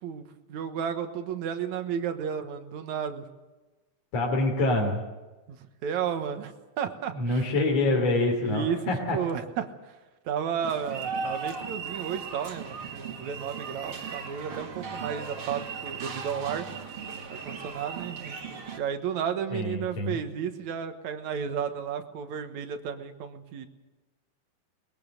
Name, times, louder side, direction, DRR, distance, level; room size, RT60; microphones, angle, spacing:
voice 1, 0.0-3.2 5.5-7.4 7.9-8.1 8.4-9.7 10.3-16.7 17.3-18.4 18.8-23.7, right 7 dB, 80° right, 8 dB, 2.6 m, -33 dB
voice 2, 4.1-5.0 7.1-9.2 19.5-20.2, left 2 dB, 60° left, -1 dB, 4.1 m, -26 dB
sound 1, 10.6-18.8, right 5 dB, 50° right, 2.7 m, -37 dB
22.5 x 21.0 x 6.7 m, 1.2 s
omnidirectional pair, 3.3 m